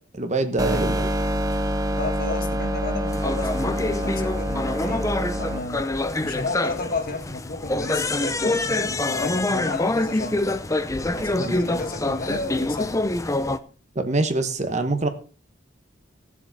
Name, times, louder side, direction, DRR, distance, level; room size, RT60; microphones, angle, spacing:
voice 1, 0.1-1.1 11.4-11.6 13.9-15.1, right 2 dB, 40° right, 1.2 m, -24 dB
sound 1, 0.6-5.6, equal, 20° right, 0.8 m, -26 dB
voice 2, 2.0-5.9 6.2-10.4 11.1-13.0, left 3 dB, 50° left, 1.6 m, -32 dB
sound 2, 3.1-13.6, left 2 dB, 15° left, 0.6 m, -26 dB
16.0 x 7.4 x 4.1 m
head